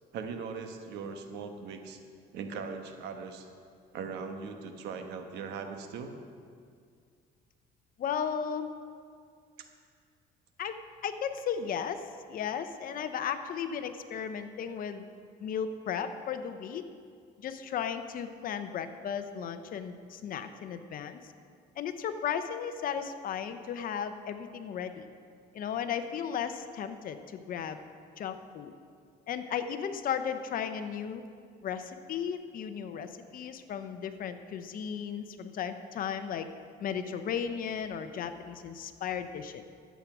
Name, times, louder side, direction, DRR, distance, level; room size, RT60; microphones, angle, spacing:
voice 1, 0.1-2.0 2.3-3.5 3.9-6.1 9.6-9.7, right 5 dB, 80° right, 5 dB, 1.2 m, -39 dB
voice 2, 8.0-8.7 10.6-10.8 11.0-15.0 15.4-16.8 17.4-21.2 21.8-25.1 25.5-27.8 28.2-28.7 29.3-31.3 31.6-36.5 36.8-39.6, left 8 dB, 55° left, 9 dB, 0.8 m, -35 dB
12.0 x 8.4 x 6.1 m, 2.2 s
cardioid pair, 110°, 17 cm